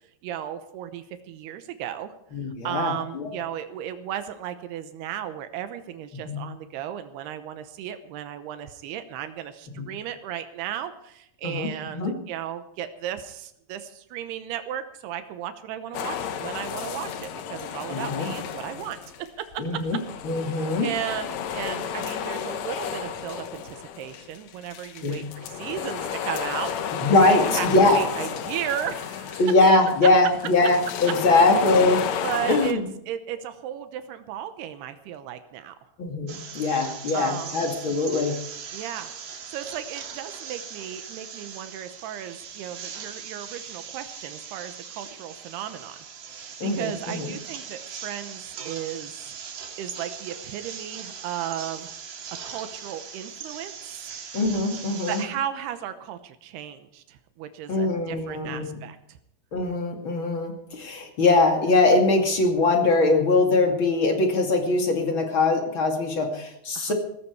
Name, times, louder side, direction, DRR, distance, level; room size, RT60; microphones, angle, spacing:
voice 1, 0.2-2.1 2.6-19.0 19.5-19.8 20.5-29.5 31.1-31.2 32.2-32.8 33.1-35.8 37.1-37.6 38.7-39.2 39.5-46.1 46.3-49.4 49.8-51.9 52.4-54.2 55.1-59.2 66.8-66.9, right 10 dB, 85° right, 9 dB, 3.0 m, -35 dB
voice 2, 2.3-3.3 6.3-6.4 9.8-9.9 11.4-11.7 11.9-12.1 17.9-18.3 19.6-20.0 20.2-20.9 25.0-25.3 27.0-28.0 29.4-32.0 32.5-32.8 36.0-38.3 46.6-47.3 54.3-55.2 57.7-58.6 59.5-66.9, left 3 dB, 35° left, 2 dB, 2.8 m, -22 dB
sound 1, 15.9-19.3 19.5-32.7, left 8 dB, 75° left, 1.6 m, -32 dB
sound 2, 36.3-55.3, right 7 dB, 60° right, 3.4 m, -40 dB
17.0 x 15.5 x 4.7 m, 0.75 s
omnidirectional pair, 4.6 m